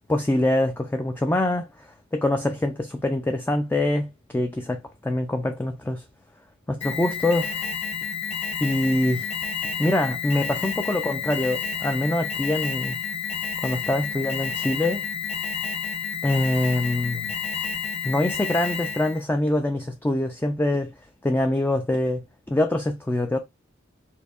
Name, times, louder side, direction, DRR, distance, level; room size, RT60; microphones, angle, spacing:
voice 1, 0.1-6.0 6.7-7.6 8.6-9.3 9.8-13.0 13.6-15.1 16.2-17.3 18.0-20.9 21.2-23.4, left 1 dB, 10° left, 0.3 m, -24 dB
Alarm, 6.8-19.2, left 6 dB, 30° left, 1.1 m, -30 dB
4.4 x 2.7 x 2.3 m
head